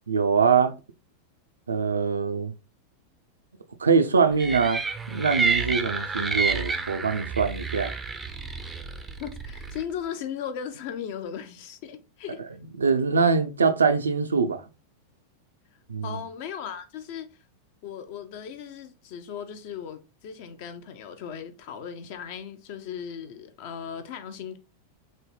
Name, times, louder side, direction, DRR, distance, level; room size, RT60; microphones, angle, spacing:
voice 1, 0.1-0.7 1.7-2.5 3.8-4.8 5.1-7.9 12.8-14.6 15.9-16.2, right 5 dB, 75° right, 0.4 m, -23 dB
sound 1, 4.4-9.8, right 4 dB, 10° right, 0.4 m, -29 dB
voice 2, 9.2-12.5 16.0-17.4 17.8-24.6, left 8 dB, 50° left, 0.5 m, -37 dB
3.9 x 2.1 x 3.3 m
figure-of-eight pair, 90°, 0 cm